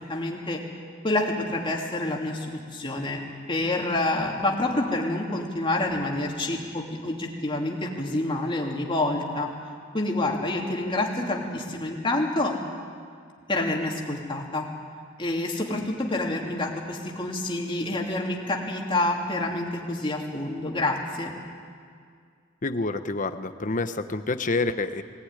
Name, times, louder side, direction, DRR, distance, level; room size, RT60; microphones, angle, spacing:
voice 1, 0.1-0.6 1.0-3.2 3.5-9.5 9.9-12.6 13.5-14.6 15.2-21.3, left 2 dB, 25° left, -1 dB, 2.9 m, -27 dB
voice 2, 22.6-25.0, left 3 dB, 40° left, 9 dB, 1.0 m, -28 dB
21.5 x 18.5 x 9.8 m, 2.1 s
head